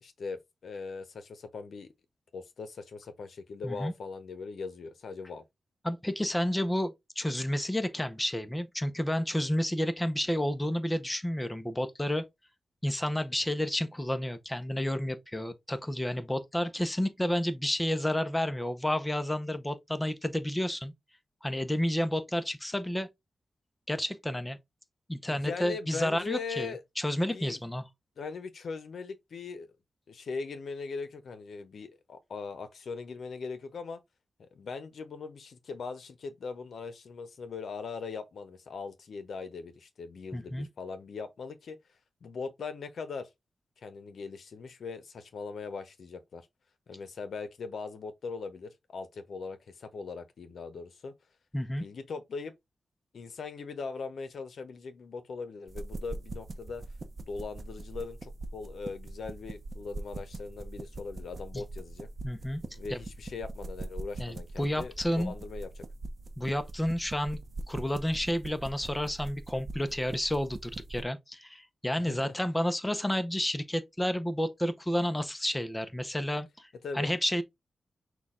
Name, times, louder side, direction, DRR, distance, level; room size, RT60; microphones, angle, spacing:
voice 1, 0.0-1.9 2.3-5.4 25.3-26.8 27.3-27.6 28.2-29.7 30.1-34.0 34.4-41.8 42.2-43.3 43.8-46.5 46.9-51.1 51.8-52.5 53.1-56.8 57.3-62.1 62.8-65.9 72.0-72.3 76.8-77.1, left 4 dB, 75° left, 0.7 m, -40 dB
voice 2, 5.8-12.2 12.8-20.9 21.4-23.1 23.9-24.6 25.1-27.8 40.3-40.7 51.5-51.8 61.5-61.6 62.2-62.6 62.9-63.0 64.2-65.3 66.4-67.4 67.7-76.7 76.9-77.4, left 1 dB, 10° left, 0.7 m, -31 dB
sound 1, 55.7-71.0, right 2 dB, 45° right, 0.7 m, -42 dB
6.1 x 2.4 x 3.6 m
wide cardioid pair, 95°, 0 cm